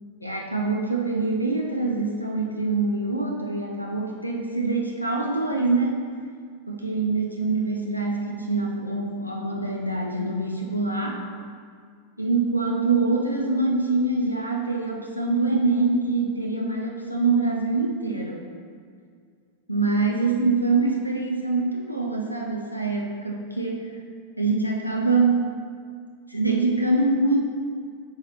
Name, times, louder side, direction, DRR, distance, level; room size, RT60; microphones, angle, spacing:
voice 1, 0.2-6.0 6.7-11.2 12.2-18.4 19.7-23.9 24.4-25.4 26.3-27.4, right 3 dB, 90° left, 0 dB, 0.6 m, -24 dB
8.3 x 5.7 x 3.0 m, 2.1 s
figure-of-eight pair, 90°, 0 cm